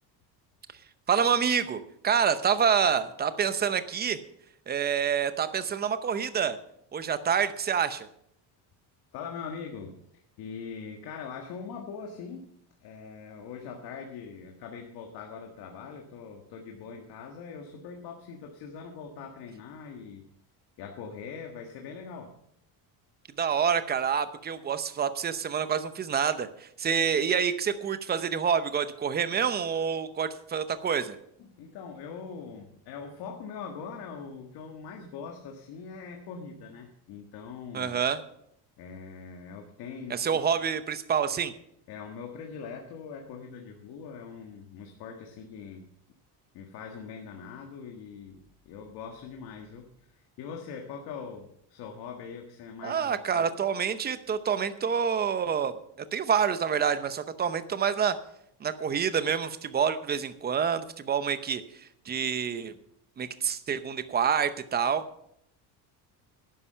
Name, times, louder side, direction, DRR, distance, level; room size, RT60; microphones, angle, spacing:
voice 1, 1.1-4.2 4.7-6.6 6.9-8.1 23.4-31.2 37.7-38.2 40.1-41.5 52.8-55.7 56.1-58.1 58.6-62.7 63.2-65.0, right 7 dB, 25° right, 12 dB, 0.8 m, -27 dB
voice 2, 9.1-10.0 10.4-12.5 12.8-20.2 20.8-22.4 31.4-38.0 38.8-40.4 41.9-45.9 46.5-53.5, left 6 dB, 70° left, 3 dB, 1.7 m, -42 dB
11.5 x 9.8 x 5.6 m, 0.73 s
cardioid pair, 150°, 40 cm